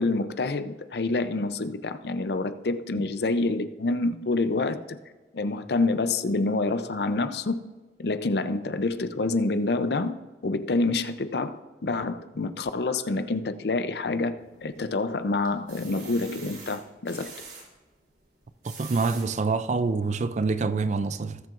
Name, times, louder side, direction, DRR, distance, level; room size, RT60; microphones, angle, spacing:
voice 1, 0.0-5.0 5.3-7.6 8.0-10.2 10.4-17.3, left 3 dB, 65° left, 0.6 m, -27 dB
sound 1, 14.4-15.0 15.4-17.6 18.4-19.3 19.9-20.0 20.3-20.4, right 5 dB, 65° right, 3.7 m, -44 dB
voice 2, 18.6-21.4, right 4 dB, 40° right, 0.4 m, -26 dB
19.0 x 7.5 x 2.5 m
head